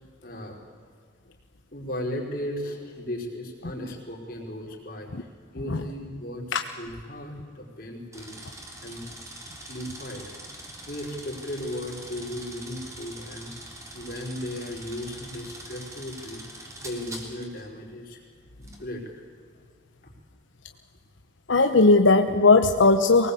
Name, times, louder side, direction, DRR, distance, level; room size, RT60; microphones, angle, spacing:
voice 1, 0.2-0.6 1.7-5.1 5.5-6.5 6.8-8.3 8.8-9.0 9.7-10.3 10.9-13.5 13.9-16.4 16.8-18.2 18.6-19.2, left 1 dB, 50° left, -1 dB, 4.9 m, -36 dB
sound 1, 8.1-17.7 18.6-18.8, right 1 dB, 15° right, 3.1 m, -43 dB
voice 2, 21.5-23.3, left 3 dB, 85° left, 6 dB, 1.0 m, -18 dB
23.5 x 19.5 x 8.5 m, 2.1 s
head